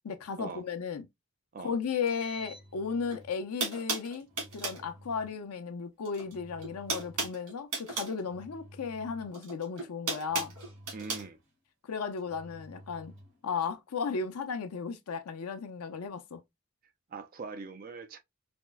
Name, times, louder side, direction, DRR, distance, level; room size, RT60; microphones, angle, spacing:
voice 1, 0.0-1.1 1.6-4.3 4.5-10.5 11.8-13.1 13.4-16.4, left 5 dB, 90° left, 0.5 m, -35 dB
Engine, 1.9-3.4 4.2-5.4 6.2-7.5 8.2-9.5 10.2-11.5 12.2-13.4, equal, 60° right, 2.1 m, -52 dB
sound 1, 3.1-3.2 3.6-4.8 6.0-6.3 6.6-8.2 9.3-11.2, right 3 dB, 90° right, 1.6 m, -35 dB
voice 2, 10.9-11.4 17.1-18.2, right 4 dB, 40° right, 0.3 m, -42 dB
4.2 x 2.0 x 2.2 m
head